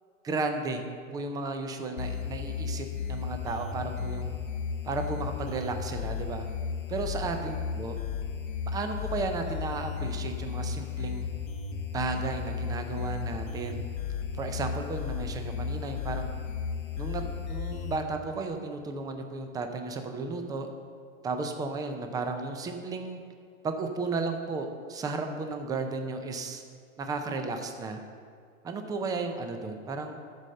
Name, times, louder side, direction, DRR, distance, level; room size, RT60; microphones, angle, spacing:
voice 1, 0.2-0.8 1.1-4.4 4.8-6.5 6.9-8.0 8.7-11.3 11.9-13.8 14.4-16.3 17.0-17.2 17.5-20.7 21.2-23.2 23.6-26.6 27.0-28.0 28.6-30.2, right 3 dB, 10° right, 6 dB, 0.5 m, -34 dB
sound 1, 2.0-18.0, left 6 dB, 80° left, 1.0 m, -34 dB
13.0 x 5.0 x 6.4 m, 2.2 s
hypercardioid pair, 135°, 41 cm